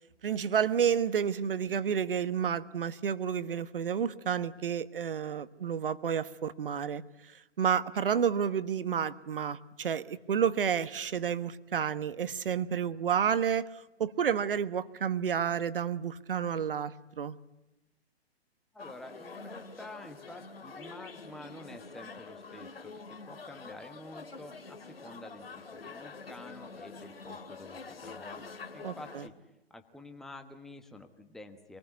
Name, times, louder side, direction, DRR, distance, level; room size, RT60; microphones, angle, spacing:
voice 1, 0.2-7.0 7.6-13.7 14.0-17.3 28.8-29.2, right 8 dB, 55° right, 15 dB, 1.3 m, -30 dB
voice 2, 18.7-28.4 28.7-29.3 29.7-31.8, left 1 dB, ahead, 6 dB, 1.2 m, -49 dB
sound 1, 18.8-29.3, left 4 dB, 65° left, 2.5 m, -46 dB
27.0 x 20.0 x 9.4 m, 0.99 s
figure-of-eight pair, 125°, 32 cm